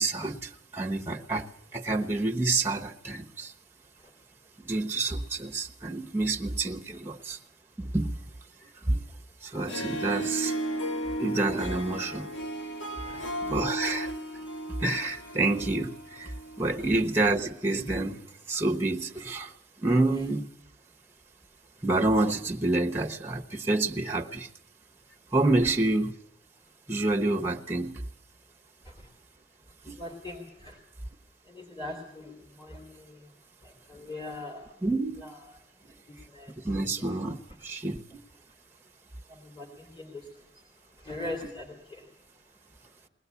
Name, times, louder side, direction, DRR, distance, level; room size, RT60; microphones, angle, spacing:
voice 1, 0.0-3.5 4.6-7.4 7.8-8.1 8.6-9.0 9.4-10.6 11.2-12.3 13.1-14.1 14.8-20.5 21.8-24.5 25.3-26.1 26.9-28.0 29.8-30.0 34.0-34.1 34.8-35.3 36.6-38.2 41.4-41.5, right 2 dB, 10° right, 1.0 m, -28 dB
Harp, 9.5-17.0, right 1 dB, 70° left, 1.5 m, -35 dB
voice 2, 13.0-13.3 28.9-29.0 30.0-30.8 31.5-33.2 33.6-34.7 35.2-35.3 36.1-36.5 39.3-40.3 41.0-42.0, left 2 dB, 25° left, 3.1 m, -41 dB
21.0 x 18.5 x 8.3 m
head